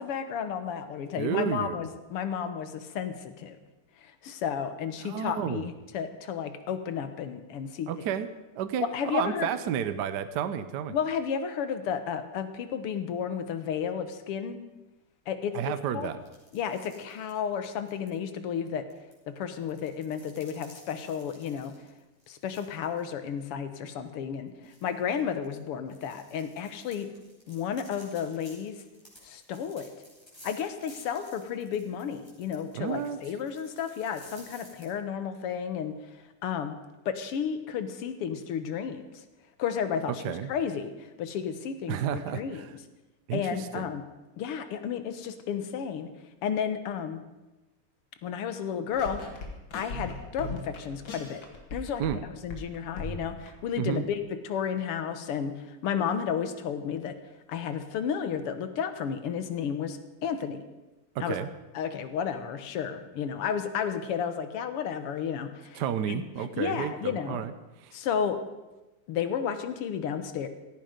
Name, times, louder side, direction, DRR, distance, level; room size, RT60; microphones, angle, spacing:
voice 1, 0.0-3.6 4.0-7.9 8.8-9.5 10.9-14.6 15.3-16.1 16.5-18.8 19.3-21.7 22.3-27.1 27.5-28.8 29.2-29.9 30.4-36.0 36.4-36.8 37.1-39.2 39.6-42.7 43.3-44.0 44.4-46.1 46.4-47.2 48.2-49.2 49.7-51.4 51.7-57.2 57.5-60.6 61.2-61.4 61.7-65.8 66.1-67.4 67.9-68.4 69.1-70.5, left 7 dB, 90° left, 10 dB, 2.1 m, -32 dB
voice 2, 1.2-1.8 5.0-5.7 7.9-8.3 8.6-8.9 9.1-11.0 15.5-16.2 32.7-33.2 40.2-40.5 41.9-42.7 43.3-43.8 52.0-52.2 53.8-54.0 61.1-61.5 65.7-67.5 67.8-67.9, right 9 dB, 65° right, 11 dB, 1.2 m, -31 dB
sound 1, 16.2-18.1 18.9-23.0 23.4-23.5 24.0-24.1 24.6-34.9, equal, 10° left, 4.7 m, -55 dB
sound 2, 48.9-52.2 52.5-53.5, left 2 dB, 60° left, 2.9 m, -39 dB
17.0 x 15.0 x 5.2 m, 1.1 s
omnidirectional pair, 2.4 m